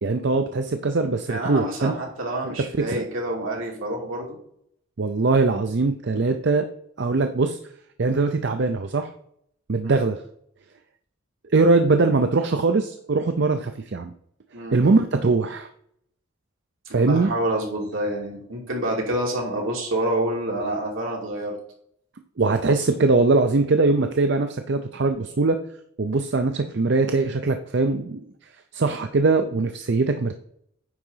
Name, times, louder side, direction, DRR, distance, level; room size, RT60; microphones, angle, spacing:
voice 1, 0.0-1.9 2.4-2.5 2.9-3.0 5.0-6.7 7.0-7.6 8.0-9.1 9.7-10.2 11.5-14.1 14.7-15.7 16.9-17.3 22.4-25.6 26.0-28.2 28.7-30.4, right 3 dB, 55° right, 7 dB, 0.5 m, -21 dB
voice 2, 1.3-4.4 9.8-10.0 14.5-14.8 16.8-21.6, right 1 dB, 75° right, -1 dB, 2.8 m, -27 dB
9.6 x 3.9 x 5.6 m, 0.68 s
head